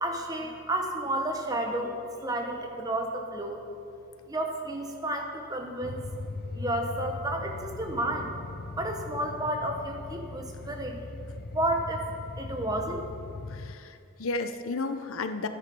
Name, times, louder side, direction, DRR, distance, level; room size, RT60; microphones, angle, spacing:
voice 1, 0.0-1.9 2.2-3.6 4.3-6.1 6.5-8.3 8.8-11.0 11.5-12.0 12.4-13.1, right 1 dB, 15° right, 3 dB, 1.1 m, -31 dB
sound 1, 5.8-13.7, left 3 dB, 45° left, 0.5 m, -40 dB
voice 2, 13.5-15.5, left 3 dB, 80° left, 9 dB, 0.7 m, -33 dB
13.0 x 9.8 x 5.4 m, 2.5 s
head